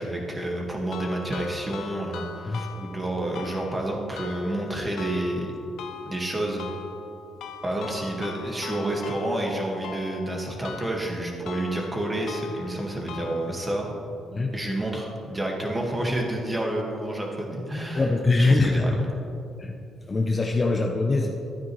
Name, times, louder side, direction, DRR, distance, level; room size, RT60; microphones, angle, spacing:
voice 1, 0.0-5.5 6.1-6.7 7.6-13.9 14.5-18.1 18.5-18.9, right 1 dB, 15° right, -1 dB, 1.7 m, -29 dB
sound 1, 0.9-13.9, left 6 dB, 75° left, 0.7 m, -42 dB
voice 2, 17.9-19.0 19.6-19.7 20.1-21.3, left 3 dB, 25° left, 1 dB, 0.7 m, -22 dB
12.5 x 9.3 x 3.1 m, 2.7 s
cardioid pair, 110°, 0 cm